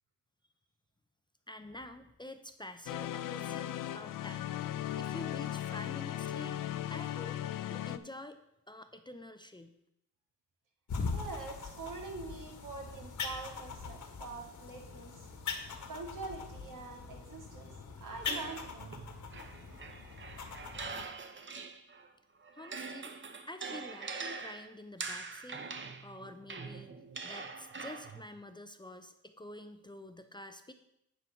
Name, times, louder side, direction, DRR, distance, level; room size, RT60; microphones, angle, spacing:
voice 1, 1.5-4.6 5.0-6.6 6.9-7.4 7.7-8.4 8.7-9.7 22.5-23.2 23.5-25.7 26.0-26.9 27.2-30.7, left 1 dB, 15° left, 9 dB, 0.6 m, -48 dB
sound 1, 2.9-8.0, left 12 dB, 90° left, 0.5 m, -37 dB
sound 2, 10.9-21.0, left 5 dB, 65° left, 1.5 m, -42 dB
voice 2, 11.1-15.1 15.9-17.7 18.0-19.0, right 3 dB, 75° right, 2 dB, 2.3 m, -44 dB
sound 3, 18.2-22.1 22.4-28.3, right 4 dB, 35° right, 0.9 m, -43 dB
9.2 x 4.6 x 6.9 m, 0.80 s
cardioid pair, 100°, 32 cm